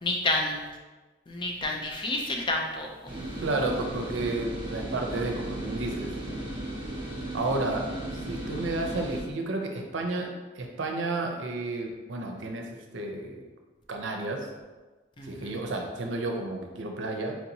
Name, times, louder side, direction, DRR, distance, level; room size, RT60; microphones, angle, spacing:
voice 1, 0.0-0.6 1.3-3.1 15.2-15.5, left 2 dB, 25° left, 0 dB, 0.4 m, -30 dB
sound 1, 3.1-9.2, right 1 dB, 25° right, 0.9 m, -36 dB
voice 2, 3.4-6.1 7.3-7.9 8.1-10.3 10.6-12.7 12.9-13.5 13.9-14.5 15.2-17.4, right 2 dB, 80° right, 2 dB, 0.6 m, -31 dB
4.5 x 2.9 x 2.7 m, 1.3 s
head